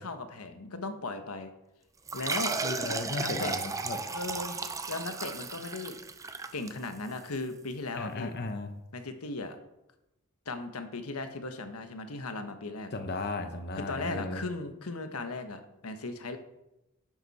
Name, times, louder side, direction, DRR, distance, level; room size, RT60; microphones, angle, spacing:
voice 1, 0.0-1.5 2.1-2.6 3.2-3.5 4.1-4.6 4.9-6.0 6.5-8.3 8.9-9.6 10.5-12.9 13.8-16.4, left 3 dB, 90° left, 8 dB, 1.2 m, -37 dB
sound 1, 2.1-7.2, right 4 dB, 15° right, 0.6 m, -35 dB
voice 2, 2.6-4.0 7.9-8.8 12.9-14.4, left 2 dB, 50° left, 7 dB, 0.9 m, -35 dB
11.0 x 9.8 x 4.2 m, 0.91 s
head